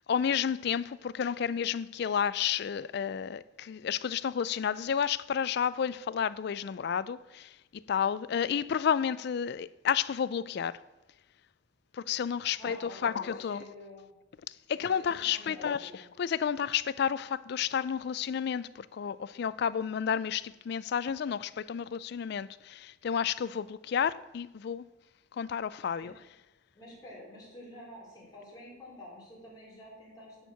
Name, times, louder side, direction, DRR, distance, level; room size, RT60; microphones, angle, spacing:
voice 1, 0.1-10.8 11.9-13.6 14.5-15.9 16.2-24.8 25.3-26.1, left 8 dB, 55° left, 0.3 m, -31 dB
voice 2, 12.6-14.1 14.7-15.6 16.0-16.1 26.0-26.1 26.7-30.5, left 1 dB, 20° left, 3.9 m, -49 dB
11.0 x 4.5 x 6.8 m
head